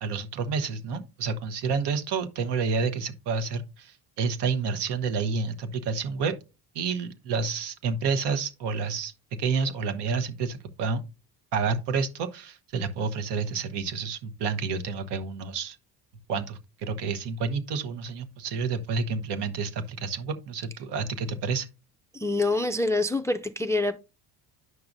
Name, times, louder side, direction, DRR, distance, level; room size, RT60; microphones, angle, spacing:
voice 1, 0.0-6.3 6.7-9.1 9.4-11.0 11.5-15.8 16.3-21.7, right 5 dB, 60° right, 1.1 m, -29 dB
voice 2, 22.1-23.9, left 2 dB, 5° left, 0.3 m, -26 dB
9.5 x 5.8 x 2.6 m
hypercardioid pair, 65°, 45 cm